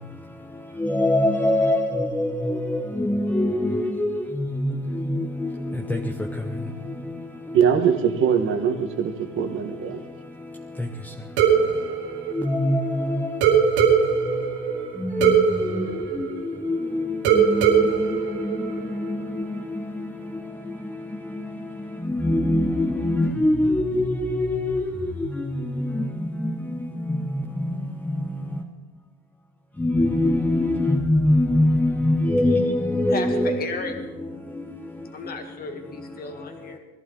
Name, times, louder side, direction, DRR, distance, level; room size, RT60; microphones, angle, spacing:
voice 1, 0.7-7.7 8.0-8.1 8.7-8.8 9.3-10.0 10.4-11.1 12.3-28.3 29.8-35.0 35.2-35.3 36.0-36.1, left 1 dB, 5° left, 0.9 m, -25 dB
voice 2, 7.5-10.0, right 7 dB, 40° right, 1.7 m, -22 dB
sound 1, 11.4-13.0 13.4-16.8 17.2-19.2, right 7 dB, 85° right, 3.1 m, -21 dB
voice 3, 33.1-33.9 35.1-36.8, left 4 dB, 25° left, 2.1 m, -34 dB
21.0 x 14.5 x 4.1 m
cardioid pair, 145°, 32 cm